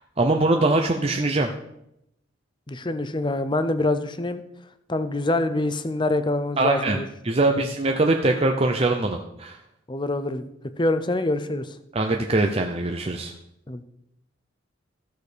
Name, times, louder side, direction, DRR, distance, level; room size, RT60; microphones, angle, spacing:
voice 1, 0.2-1.5 6.6-7.0 7.2-9.6 11.9-13.3, right 2 dB, 30° right, 3 dB, 0.6 m, -22 dB
voice 2, 2.7-4.4 4.9-7.1 7.5-7.6 9.9-10.5 10.8-11.7 13.7-13.8, left 2 dB, 25° left, 11 dB, 0.6 m, -25 dB
14.5 x 6.4 x 5.1 m, 0.81 s
head